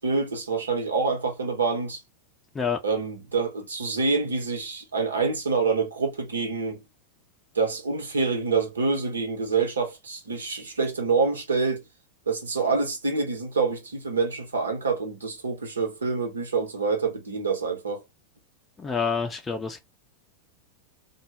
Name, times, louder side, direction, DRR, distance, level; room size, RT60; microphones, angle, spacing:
voice 1, 0.0-2.0 2.8-6.8 7.5-11.8 12.3-18.0, right 4 dB, 70° right, 0.8 m, -26 dB
voice 2, 18.8-19.8, left 5 dB, 15° left, 0.5 m, -27 dB
2.1 x 2.0 x 3.4 m
figure-of-eight pair, 90°, 0 cm